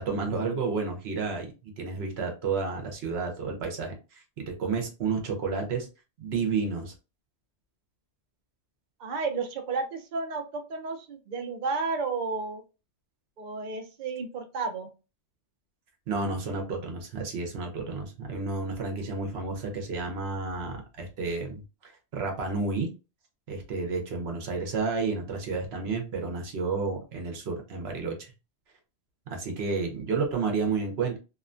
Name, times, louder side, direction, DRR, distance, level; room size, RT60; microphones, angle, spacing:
voice 1, 0.0-1.5 1.8-4.2 4.6-5.9 6.2-6.9 16.1-22.9 23.5-28.3 29.3-31.2, right 4 dB, 65° right, 3 dB, 1.0 m, -31 dB
voice 2, 9.0-12.6 13.4-14.9, right 4 dB, 50° right, 5 dB, 0.6 m, -32 dB
2.8 x 2.2 x 2.5 m, 0.30 s
omnidirectional pair, 1.2 m